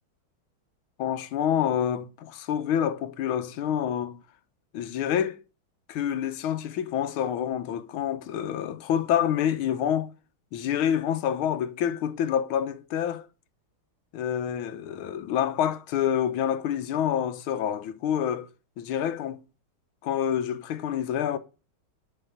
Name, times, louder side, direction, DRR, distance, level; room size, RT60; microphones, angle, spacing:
voice 1, 1.0-4.2 4.7-5.4 5.9-10.1 10.5-13.3 14.1-18.5 18.8-19.4 20.0-21.4, left 9 dB, 85° left, 1.6 m, -27 dB
10.0 x 4.6 x 6.5 m
omnidirectional pair, 2.3 m